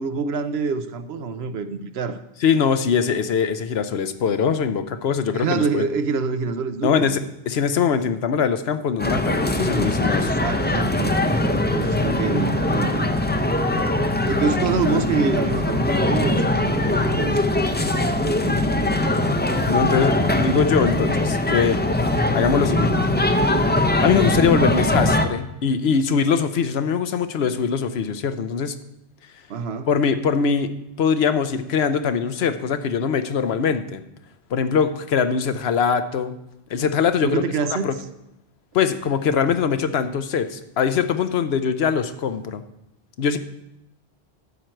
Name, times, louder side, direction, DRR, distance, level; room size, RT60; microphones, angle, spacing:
voice 1, 0.0-2.2 5.3-7.2 10.2-13.1 14.2-17.8 18.2-18.4 20.3-20.4 29.5-29.9 37.2-38.0, right 5 dB, 80° right, 10 dB, 1.0 m, -26 dB
voice 2, 2.4-5.9 6.8-10.3 18.4-19.0 19.6-21.8 22.3-23.0 24.0-28.8 29.9-30.7 31.0-34.0 34.5-36.3 36.7-37.4 37.7-37.9 38.7-42.6 43.2-43.4, left 6 dB, 75° left, 10 dB, 1.0 m, -22 dB
sound 1, 9.0-25.3, left 1 dB, 15° left, 0.5 m, -21 dB
12.0 x 4.5 x 7.7 m, 0.86 s
omnidirectional pair, 1.1 m